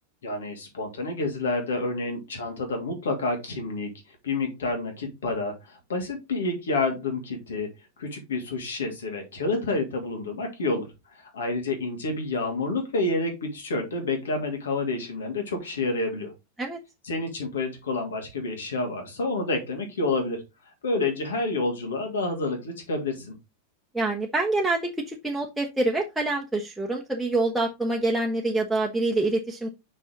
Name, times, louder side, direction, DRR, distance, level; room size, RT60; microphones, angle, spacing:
voice 1, 0.2-3.9 4.2-7.7 8.0-16.3 17.0-20.4 20.8-23.3, left 2 dB, 65° left, 3 dB, 2.5 m, -29 dB
voice 2, 23.9-29.7, right 2 dB, 5° right, -1 dB, 1.1 m, -26 dB
6.2 x 5.5 x 3.9 m, 0.23 s
figure-of-eight pair, 90°, 0 cm